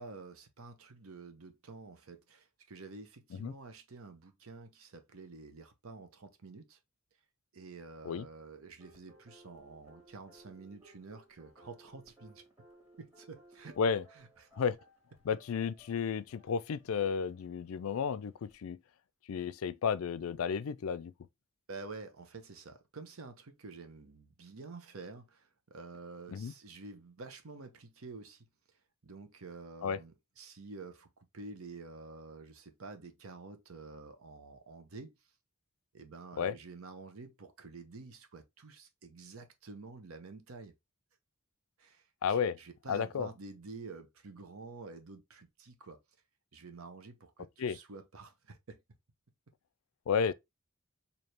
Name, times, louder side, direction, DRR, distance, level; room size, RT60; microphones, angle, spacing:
voice 1, 0.0-6.8 7.5-12.4 13.0-13.8 14.1-14.5 21.7-28.5 29.0-35.1 35.9-40.7 41.8-46.0 46.5-48.8, right 3 dB, 80° right, 0.9 m, -49 dB
sound 1, 8.8-18.6, right 1 dB, 10° right, 1.7 m, -61 dB
voice 2, 15.3-18.8 19.3-21.1 26.3-26.5 29.8-30.0 36.4-36.5 42.2-42.6 42.9-43.3 47.6-47.8 50.1-50.3, left 6 dB, 75° left, 0.4 m, -32 dB
4.4 x 2.8 x 3.2 m
head